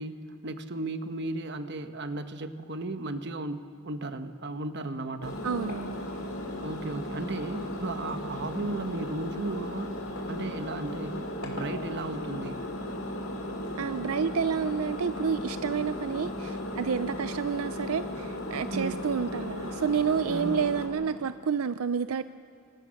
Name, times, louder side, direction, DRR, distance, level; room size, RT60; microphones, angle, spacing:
voice 1, 0.0-5.4 6.6-12.6 18.7-19.0 20.3-20.6, right 2 dB, 55° right, 8 dB, 1.3 m, -35 dB
Engine, 5.2-20.9, left 1 dB, 75° left, 3.6 m, -36 dB
voice 2, 5.4-6.0 13.8-22.2, right 6 dB, 85° right, 12 dB, 0.5 m, -29 dB
27.5 x 25.5 x 6.5 m, 2.5 s
head